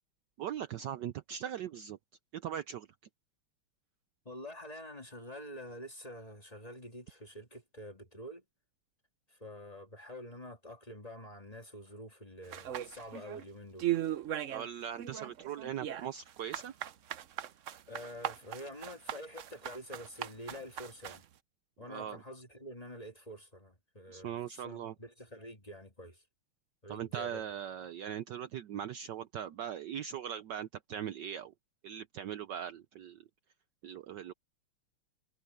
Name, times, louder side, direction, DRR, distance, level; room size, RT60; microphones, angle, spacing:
voice 1, 0.4-2.0 2.3-2.9 14.5-16.7 21.9-22.2 24.1-24.9 26.9-31.5 31.8-33.2 33.8-34.3, right 9 dB, 65° right, 1.2 m, -40 dB
voice 2, 4.3-8.4 9.3-13.9 17.9-21.2 21.8-26.2 26.8-27.4, equal, 20° left, 2.2 m, -47 dB
sound 1, 12.5-13.4 13.8-14.7 15.0-21.2, right 12 dB, 85° right, 0.6 m, -38 dB
omnidirectional pair, 2.3 m